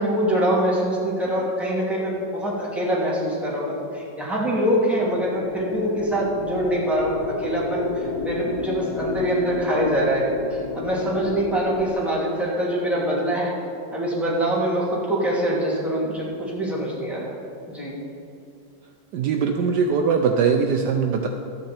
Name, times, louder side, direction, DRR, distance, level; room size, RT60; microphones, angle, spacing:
voice 1, 0.0-13.5 13.9-17.3 17.7-17.9, equal, ahead, -7 dB, 2.8 m, -24 dB
sound 1, 4.8-11.9, left 3 dB, 60° left, 1.4 m, -31 dB
voice 2, 19.1-21.3, right 6 dB, 70° right, 3 dB, 1.2 m, -21 dB
13.5 x 9.7 x 4.4 m, 2.6 s
omnidirectional pair, 2.0 m